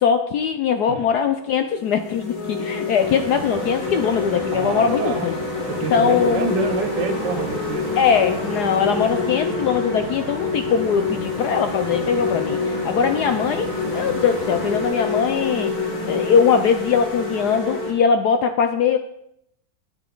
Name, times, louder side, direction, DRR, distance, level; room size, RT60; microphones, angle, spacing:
voice 1, 0.0-5.3 5.9-6.5 8.0-15.7 16.1-19.0, left 7 dB, 70° left, 8 dB, 1.0 m, -21 dB
sound 1, 1.0-1.2 1.7-17.9, left 3 dB, 85° left, 3.2 m, -27 dB
sound 2, 2.2-7.8 8.4-14.0, left 4 dB, 30° left, 0.6 m, -36 dB
sound 3, 3.0-14.9, right 5 dB, 80° right, 2.0 m, -36 dB
voice 2, 4.5-5.3 5.8-7.9, right 5 dB, 60° right, 6 dB, 1.5 m, -27 dB
13.0 x 9.2 x 3.8 m, 0.75 s
omnidirectional pair, 2.2 m